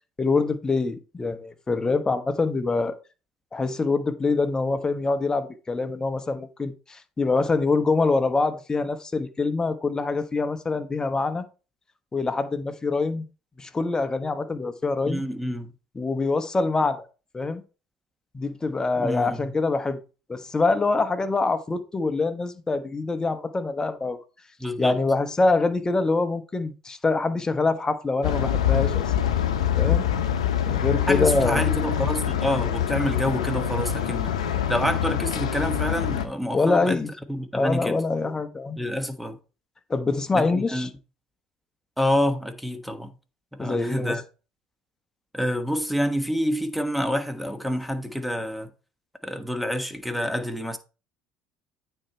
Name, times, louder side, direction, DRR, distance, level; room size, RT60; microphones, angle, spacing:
voice 1, 0.2-2.9 3.5-11.4 12.1-13.2 13.6-15.2 15.9-17.0 17.3-17.6 18.3-20.0 20.3-24.2 24.8-29.0 29.8-30.1 30.7-31.6 36.5-37.1 37.5-38.8 39.9-40.9 43.6-44.2, left 3 dB, 20° left, 1.1 m, -25 dB
voice 2, 15.0-15.7 19.0-19.4 24.6-25.0 31.1-37.0 37.3-38.0 38.8-39.4 40.3-40.9 42.0-43.1 43.5-44.2 45.3-48.7 49.2-50.8, equal, ahead, 1.4 m, -27 dB
sound 1, 28.2-36.3, left 9 dB, 90° left, 0.8 m, -25 dB
8.9 x 4.5 x 4.4 m
hypercardioid pair, 70°, 3 cm